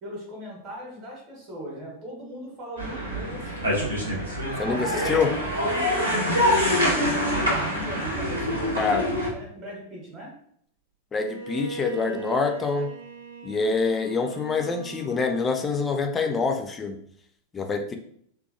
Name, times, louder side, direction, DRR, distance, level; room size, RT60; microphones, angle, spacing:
voice 1, 0.0-5.1 5.5-8.9 9.3-10.3, right 1 dB, 30° right, -3 dB, 1.1 m, -38 dB
sound 1, 2.8-9.3, equal, 80° right, 0.7 m, -25 dB
voice 2, 4.6-5.3 8.8-9.1 11.1-12.9 13.4-17.0 17.5-18.0, left 4 dB, 20° left, 4 dB, 0.3 m, -26 dB
Bowed string instrument, 11.2-16.2, right 4 dB, 60° right, 0.4 m, -40 dB
2.7 x 2.3 x 2.5 m, 0.65 s
figure-of-eight pair, 90°, 0 cm